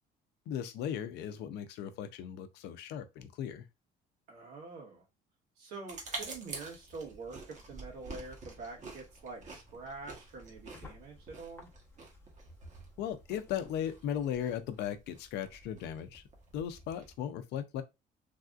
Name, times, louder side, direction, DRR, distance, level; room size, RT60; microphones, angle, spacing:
voice 1, 0.5-3.6 13.0-16.2 16.5-17.8, left 9 dB, 80° left, 0.5 m, -37 dB
voice 2, 4.3-5.0 5.6-11.7, right 4 dB, 80° right, 1.5 m, -46 dB
sound 1, 5.9-17.2, right 3 dB, 45° right, 1.1 m, -48 dB
sound 2, 7.3-14.6, left 3 dB, 15° left, 0.8 m, -59 dB
3.3 x 2.5 x 2.4 m
cardioid pair, 110°, 17 cm